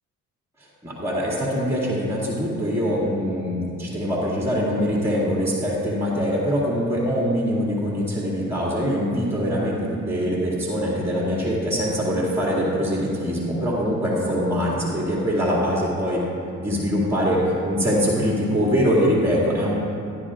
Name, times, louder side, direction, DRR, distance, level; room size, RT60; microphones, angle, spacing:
voice 1, 0.8-9.8 10.1-16.2 16.6-19.8, equal, 10° right, -6 dB, 2.2 m, -23 dB
13.0 x 11.0 x 2.5 m, 2.6 s
cardioid pair, 90°, 30 cm